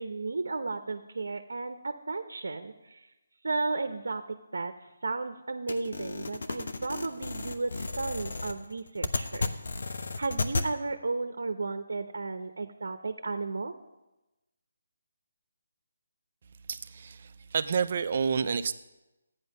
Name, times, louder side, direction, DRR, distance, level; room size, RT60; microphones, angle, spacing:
voice 1, 0.0-3.0 3.4-4.7 5.0-9.5 10.2-13.7, right 3 dB, 75° right, 8 dB, 0.9 m, -34 dB
sound 1, 5.7-10.7, left 3 dB, 65° left, 1.0 m, -33 dB
voice 2, 16.7-18.7, right 6 dB, 45° right, 12 dB, 0.6 m, -29 dB
13.0 x 9.6 x 5.4 m, 1.0 s
figure-of-eight pair, 160°, 0 cm